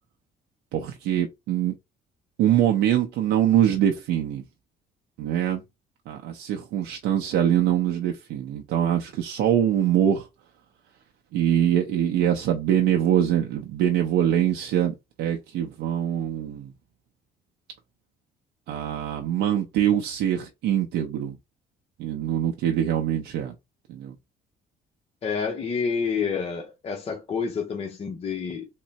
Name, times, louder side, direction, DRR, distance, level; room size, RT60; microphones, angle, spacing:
voice 1, 0.7-1.7 2.4-4.4 5.2-5.6 6.1-10.2 11.3-16.7 18.7-21.4 22.0-23.5 23.9-24.1, right 10 dB, 85° right, 0.6 m, -23 dB
voice 2, 25.2-28.7, left 5 dB, 35° left, 0.7 m, -28 dB
3.6 x 2.0 x 4.0 m
cardioid pair, 110°, 17 cm